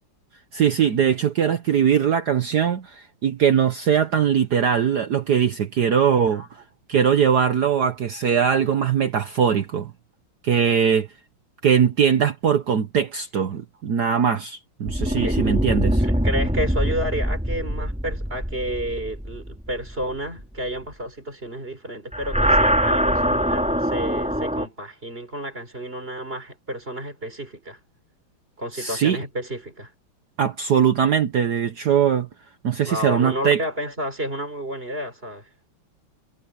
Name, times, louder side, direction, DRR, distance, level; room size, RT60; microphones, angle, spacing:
voice 1, 0.5-6.6 6.9-9.9 10.4-11.1 11.6-16.0 28.7-29.2 30.4-32.3 32.6-33.6, right 8 dB, 55° right, 1.5 m, -21 dB
sound 1, 14.9-20.4 22.1-24.7, equal, 5° right, 3.8 m, -23 dB
voice 2, 15.0-15.4 16.0-27.8 28.6-29.9 32.9-35.5, equal, 25° right, 4.7 m, -31 dB
omnidirectional pair, 2.2 m